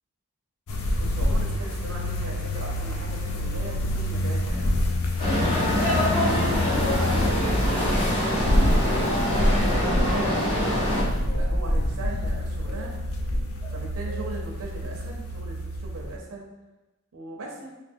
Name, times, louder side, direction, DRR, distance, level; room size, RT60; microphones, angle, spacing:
sound 1, 0.7-16.2, left 1 dB, 85° left, 0.5 m, -27 dB
voice 1, 1.0-4.9 5.6-9.1 9.7-12.9 13.7-16.5 17.1-17.7, right 2 dB, 80° right, 0 dB, 0.7 m, -38 dB
sound 2, 5.2-11.0, equal, 25° left, 1.0 m, -24 dB
sound 3, 8.0-8.7 9.3-10.3 10.8-11.8 12.1-13.1 13.6-14.5, right 3 dB, 10° right, 1.1 m, -44 dB
3.3 x 2.8 x 2.6 m, 1.1 s
head